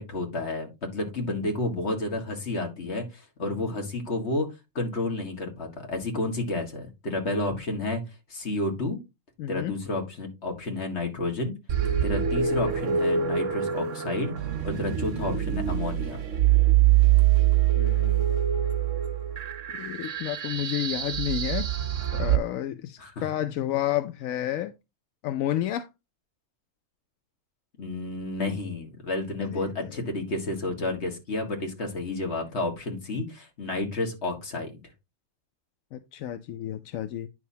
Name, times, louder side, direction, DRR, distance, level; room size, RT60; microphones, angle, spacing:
voice 1, 0.0-4.5 4.8-8.0 8.3-9.0 9.5-11.5 12.0-14.3 14.6-16.2 23.0-23.2 27.8-34.7, left 2 dB, 55° left, 2.1 m, -31 dB
voice 2, 9.4-9.7 17.8-18.3 19.8-21.7 22.1-24.7 25.2-25.9 29.5-30.0 35.9-37.3, left 12 dB, 85° left, 1.0 m, -31 dB
sound 1, 11.7-22.4, right 11 dB, 70° right, 1.3 m, -24 dB
9.4 x 6.2 x 2.8 m
omnidirectional pair, 1.4 m